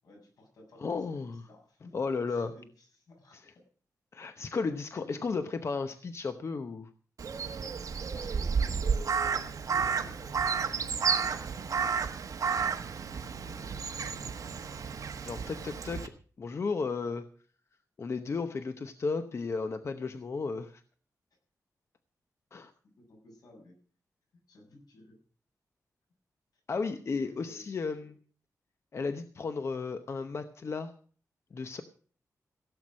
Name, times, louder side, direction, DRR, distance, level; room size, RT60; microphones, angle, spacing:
voice 1, 0.0-1.9 2.3-3.6 4.4-4.6 5.0-5.2 5.9-6.0 8.1-12.2 13.0-14.5 23.0-23.7 24.5-25.2 27.0-27.6 28.0-28.1 29.0-29.2, left 1 dB, 80° left, 2 dB, 7.0 m, -55 dB
voice 2, 0.8-1.4 1.9-2.5 3.3-3.4 4.1-6.9 15.2-16.1 16.4-17.3 18.0-20.8 22.5-22.7 26.7-28.2 28.9-30.9 31.5-31.8, left 4 dB, 45° left, 9 dB, 0.8 m, -34 dB
Crow, 7.2-16.1, right 6 dB, 65° right, 1.3 m, -31 dB
16.5 x 8.0 x 6.3 m, 0.43 s
wide cardioid pair, 130°, 6 cm